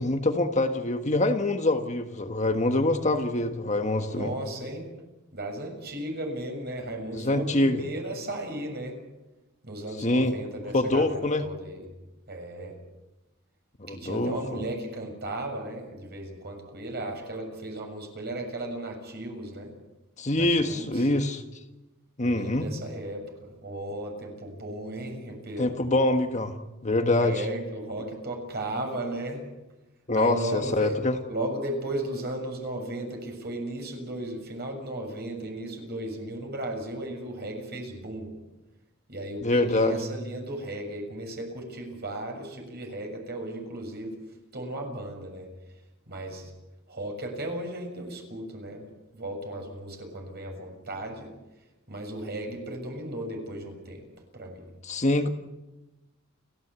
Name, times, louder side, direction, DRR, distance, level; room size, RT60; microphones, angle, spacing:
voice 1, 0.0-4.3 7.1-7.8 10.0-10.4 10.7-11.4 13.8-14.6 20.2-21.4 22.2-22.7 25.6-26.5 26.8-27.4 30.1-31.1 39.4-40.0 54.8-55.3, left 2 dB, 35° left, 6 dB, 1.5 m, -25 dB
voice 2, 4.1-4.9 5.3-9.0 9.6-11.8 12.3-12.8 13.9-19.7 20.4-21.1 22.2-25.8 27.2-29.4 30.1-31.0 31.3-38.4 39.1-44.1 44.5-45.5 46.1-46.5 46.9-48.9 49.1-51.3 51.9-54.0 54.3-54.6, right 1 dB, 50° right, 3 dB, 6.7 m, -35 dB
30.0 x 14.5 x 8.3 m, 1.0 s
head